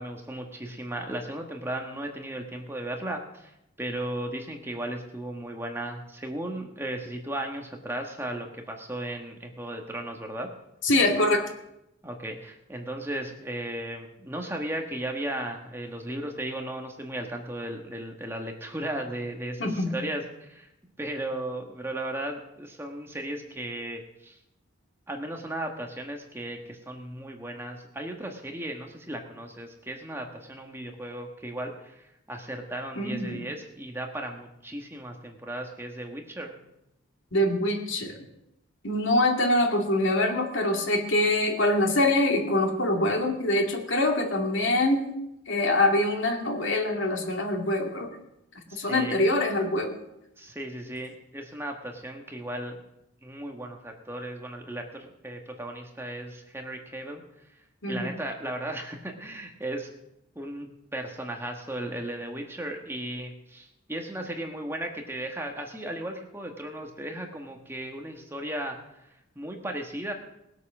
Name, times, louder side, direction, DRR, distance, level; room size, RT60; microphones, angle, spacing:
voice 1, 0.0-10.5 12.0-20.7 21.0-24.4 25.1-36.6 48.7-49.2 50.4-52.8 53.2-57.4 57.9-59.9 60.3-70.1, right 1 dB, 10° right, 2 dB, 1.5 m, -36 dB
voice 2, 10.8-11.4 19.6-20.0 33.0-33.4 37.3-38.2 38.8-45.1 45.5-48.1 48.8-49.9 57.8-58.1, left 1 dB, 70° left, 3 dB, 2.2 m, -24 dB
19.5 x 8.3 x 6.1 m, 0.85 s
head